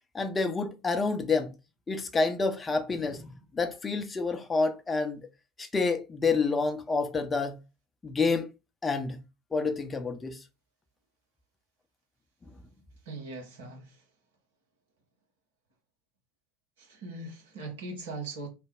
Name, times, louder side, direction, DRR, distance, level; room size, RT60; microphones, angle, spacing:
voice 1, 0.1-1.5 1.9-3.3 3.5-5.3 5.6-7.6 8.0-8.5 8.8-9.2 9.5-10.4, left 4 dB, 20° left, 0.6 m, -28 dB
voice 2, 13.0-14.0 16.8-18.5, right 3 dB, 70° right, 1.2 m, -40 dB
3.2 x 2.2 x 3.4 m
figure-of-eight pair, 70°, 0 cm